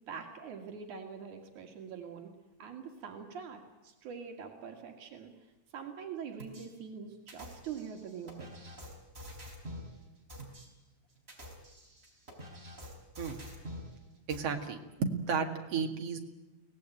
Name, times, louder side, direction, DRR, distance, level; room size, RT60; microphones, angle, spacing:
voice 1, 0.1-2.3 2.6-5.3 5.7-8.5, right 6 dB, 80° right, 3 dB, 3.5 m, -44 dB
sound 1, 6.4-6.7 7.3-9.9 10.3-10.6 11.2-13.9 14.3-14.4, equal, 20° right, 4.7 m, -47 dB
voice 2, 14.3-16.2, right 5 dB, 55° right, 4 dB, 2.9 m, -33 dB
23.5 x 18.0 x 9.1 m, 1.1 s
omnidirectional pair, 3.4 m